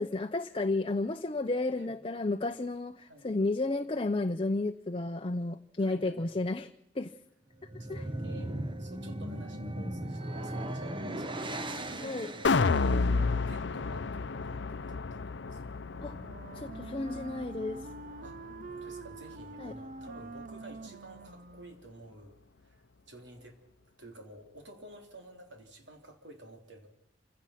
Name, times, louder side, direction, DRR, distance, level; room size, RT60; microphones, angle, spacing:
voice 1, 0.0-7.1 7.9-8.0 12.0-12.3 16.0-16.1 16.5-17.8 19.6-19.7, left 2 dB, 30° left, 7 dB, 0.7 m, -32 dB
voice 2, 5.8-6.4 7.8-15.6 18.2-23.6 24.0-26.9, right 1 dB, 75° right, 4 dB, 3.5 m, -51 dB
sound 1, 7.5-13.0, right 1 dB, 30° right, 1.2 m, -37 dB
sound 2, 12.4-18.7 19.1-19.2, left 4 dB, 70° left, 0.7 m, -31 dB
Wind instrument woodwind instrument, 15.8-21.9, right 3 dB, 45° right, 0.6 m, -46 dB
27.5 x 16.5 x 5.9 m, 0.88 s
head